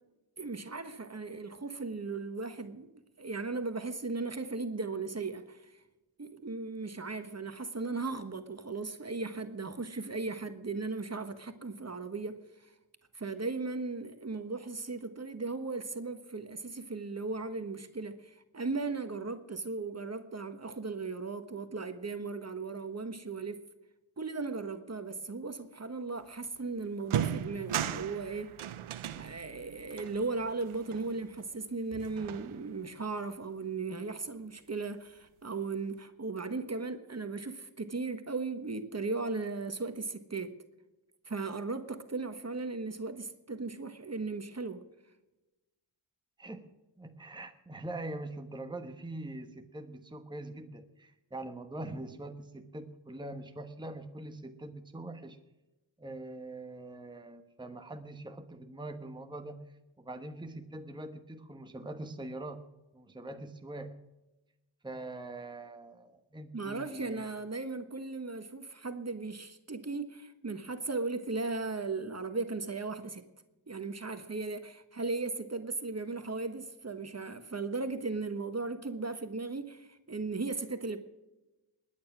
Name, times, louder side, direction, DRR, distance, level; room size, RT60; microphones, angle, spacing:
voice 1, 0.4-2.9 3.2-5.7 6.2-12.7 13.1-23.6 24.2-28.5 29.1-40.5 41.3-44.8 66.5-73.2 73.7-81.0, right 3 dB, 30° right, 1.4 m, -37 dB
sound 1, 26.4-26.6 27.0-31.6 31.9-32.9, right 10 dB, 90° right, 0.8 m, -37 dB
voice 2, 46.4-55.4 56.0-62.6 62.9-64.0 64.8-67.3, right 2 dB, 10° right, 1.2 m, -43 dB
20.0 x 9.7 x 6.1 m
cardioid pair, 60°, 48 cm